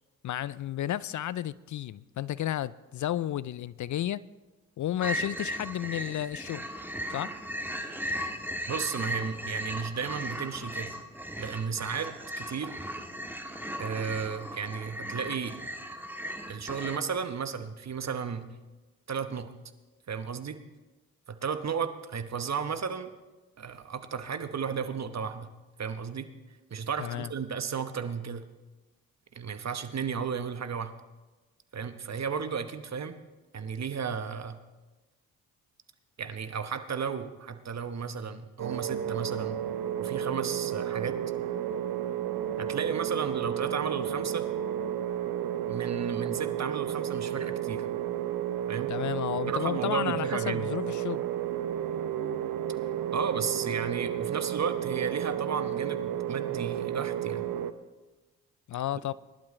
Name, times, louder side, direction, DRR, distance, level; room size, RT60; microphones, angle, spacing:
voice 1, 0.2-4.2 4.8-6.7 7.1-7.3 27.0-27.3 48.9-51.2 58.7-59.1, left 12 dB, 45° left, 0.5 m, -32 dB
sound 1, 5.0-17.0, equal, 5° right, 1.6 m, -37 dB
voice 2, 8.7-11.0 11.4-12.7 13.8-15.6 16.5-18.5 19.1-19.5 20.1-20.6 21.3-23.1 23.6-25.5 25.8-26.3 26.7-28.5 29.3-30.9 31.7-33.2 33.5-34.6 36.2-39.6 40.0-41.2 42.6-44.5 45.7-47.9 48.7-48.9 49.5-50.7 53.1-57.5, right 6 dB, 40° right, 1.2 m, -34 dB
sound 2, 38.6-57.7, right 10 dB, 55° right, 0.9 m, -32 dB
22.0 x 11.5 x 3.2 m
hypercardioid pair, 45°, 42 cm